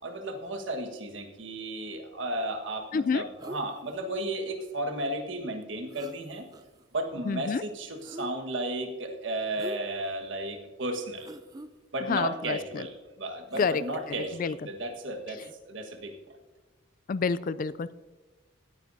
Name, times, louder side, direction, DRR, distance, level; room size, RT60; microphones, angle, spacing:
voice 1, 0.0-6.5 6.9-11.3 11.9-15.4 15.6-16.1, right 1 dB, 65° right, 4 dB, 1.4 m, -34 dB
voice 2, 2.9-3.3 7.3-7.6 12.1-12.9 13.6-13.8 14.3-14.6 17.1-17.9, left 5 dB, 40° left, 16 dB, 0.3 m, -28 dB
sound 1, 3.4-4.0 5.6-5.7 5.9-6.9 8.0-8.6 9.6-10.1 10.6-10.7 11.2-11.7 13.5-14.3 15.4-15.5, right 1 dB, 20° right, 0.5 m, -44 dB
18.0 x 9.7 x 2.7 m, 1.2 s
head